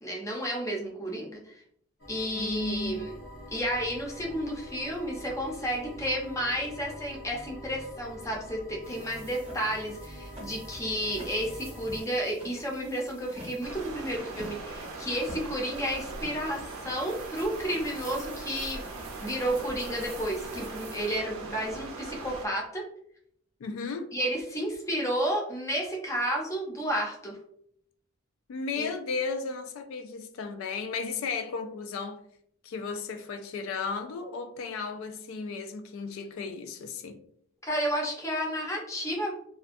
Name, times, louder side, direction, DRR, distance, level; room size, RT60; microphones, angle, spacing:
voice 1, 0.0-1.5 2.1-3.1 3.5-18.8 19.2-22.8 24.1-27.4 28.8-28.9 37.6-39.3, equal, 15° left, 0.5 m, -31 dB
sound 1, 2.0-12.0, equal, 65° left, 0.9 m, -45 dB
voice 2, 2.3-3.1 23.6-24.1 28.5-32.2 32.6-37.2, left 4 dB, 85° left, 0.3 m, -34 dB
sound 2, 8.8-21.2, right 1 dB, 30° right, 0.8 m, -48 dB
Stream, 13.6-22.5, right 3 dB, 90° right, 0.5 m, -40 dB
2.5 x 2.2 x 2.5 m
head